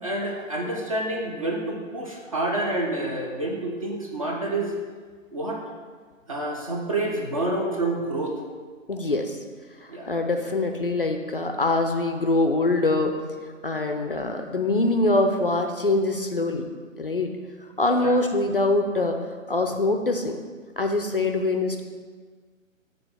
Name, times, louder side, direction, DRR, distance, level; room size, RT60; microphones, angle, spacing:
voice 1, 0.0-4.7 5.3-5.6 6.3-8.3 9.9-10.1 18.0-18.1, right 2 dB, 25° right, 0 dB, 0.6 m, -28 dB
voice 2, 8.9-9.4 10.1-13.1 13.6-16.7 17.0-17.3 17.8-19.2 19.5-20.4 20.8-21.8, left 2 dB, 45° left, 5 dB, 0.5 m, -23 dB
6.8 x 3.8 x 5.9 m, 1.6 s
figure-of-eight pair, 140°, 40 cm